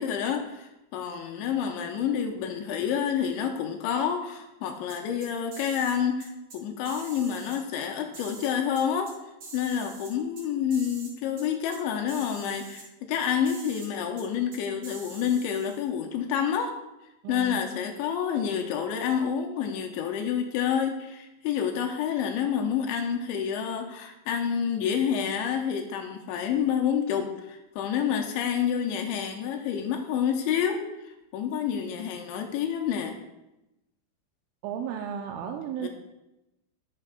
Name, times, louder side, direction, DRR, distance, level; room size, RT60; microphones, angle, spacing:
voice 1, 0.0-9.1 9.5-16.8 17.3-33.2 35.8-35.9, left 8 dB, 80° left, 3 dB, 2.9 m, -28 dB
sound 1, 4.9-5.9 6.2-6.6 6.9-7.6 8.1-9.1 9.4-10.4 10.7-11.1 11.4-11.5 11.7-11.8 12.1-12.8 13.5-13.9 14.2-14.3 14.5-15.8, right 4 dB, 45° right, 4.3 m, -45 dB
voice 2, 17.2-17.6 34.6-35.9, right 8 dB, 85° right, 3 dB, 3.1 m, -34 dB
10.0 x 9.9 x 2.3 m, 0.92 s
omnidirectional pair, 5.6 m